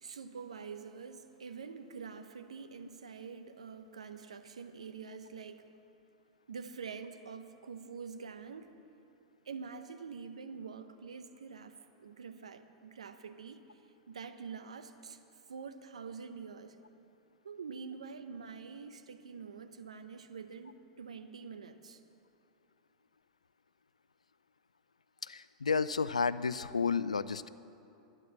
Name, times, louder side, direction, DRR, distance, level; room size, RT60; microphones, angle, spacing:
voice 1, 0.0-5.7 6.5-8.7 9.4-13.6 14.1-15.2 15.5-16.8 17.4-22.0, right 5 dB, 80° right, 9 dB, 0.8 m, -46 dB
voice 2, 25.2-27.5, left 5 dB, 85° left, 15 dB, 0.4 m, -31 dB
12.0 x 9.9 x 7.4 m, 2.8 s
figure-of-eight pair, 95°, 3 cm